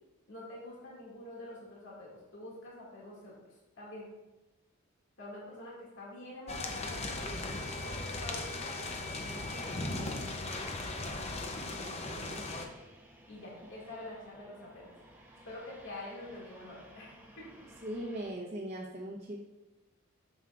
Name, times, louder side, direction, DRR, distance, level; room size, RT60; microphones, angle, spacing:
voice 1, 0.3-4.1 5.2-10.8 13.3-14.9 15.4-17.5, left 1 dB, 60° left, -5 dB, 2.2 m, -47 dB
sound 1, 6.5-12.7, left 2 dB, 30° left, 0.7 m, -38 dB
sound 2, 8.9-18.3, right 1 dB, 10° right, 0.9 m, -55 dB
voice 2, 11.8-12.5 17.8-19.4, right 1 dB, 35° right, -4 dB, 0.9 m, -40 dB
9.4 x 7.3 x 2.5 m, 1.0 s
head